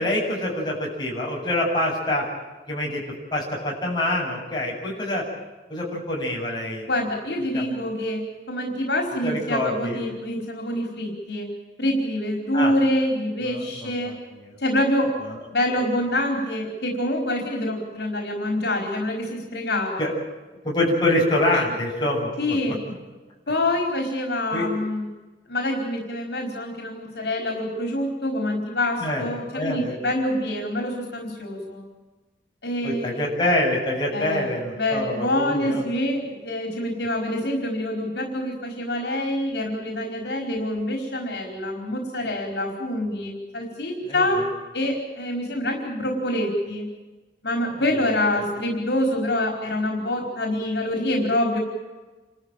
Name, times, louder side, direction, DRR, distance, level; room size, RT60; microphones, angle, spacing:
voice 1, 0.0-2.3 2.7-3.0 3.3-5.2 5.7-6.9 7.5-7.8 9.2-10.0 12.5-12.7 13.5-14.1 20.0-20.1 20.6-22.6 24.5-24.7 29.0-29.2 29.5-30.0 32.8-35.8 44.1-44.2 48.3-48.4, left 1 dB, 25° left, -3 dB, 8.0 m, -25 dB
voice 2, 6.9-11.5 11.8-14.2 14.6-15.2 15.5-20.1 21.5-21.6 22.4-22.8 23.5-25.1 25.5-31.8 32.6-33.3 34.1-34.5 34.8-44.4 44.7-46.8 47.4-51.6, left 1 dB, 70° left, 2 dB, 4.7 m, -26 dB
29.0 x 14.0 x 9.1 m, 1.2 s
head